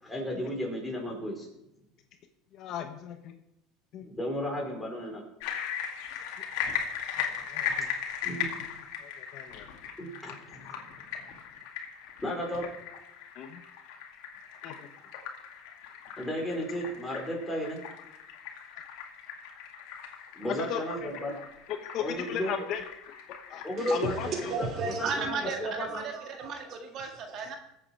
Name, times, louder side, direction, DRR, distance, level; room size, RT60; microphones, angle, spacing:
voice 1, 0.0-1.5 4.0-5.2 8.2-8.7 10.0-11.3 12.2-12.7 16.2-17.8 20.3-21.4 22.0-22.5 23.6-26.1, equal, 10° left, -1 dB, 4.5 m, -34 dB
voice 2, 2.5-3.3 3.9-4.0 6.1-6.2 7.5-7.8 9.0-9.6 13.4-13.6 14.6-14.7 20.6-21.1 21.9-22.8 23.5-23.6 23.9-24.5, left 8 dB, 55° left, 6 dB, 1.2 m, -36 dB
sound 1, 5.4-24.5, left 8 dB, 75° left, 2.2 m, -39 dB
voice 3, 23.8-27.6, right 4 dB, 50° right, 4 dB, 2.0 m, -34 dB
20.5 x 8.0 x 4.7 m, 0.84 s
supercardioid pair, 125°, 0 cm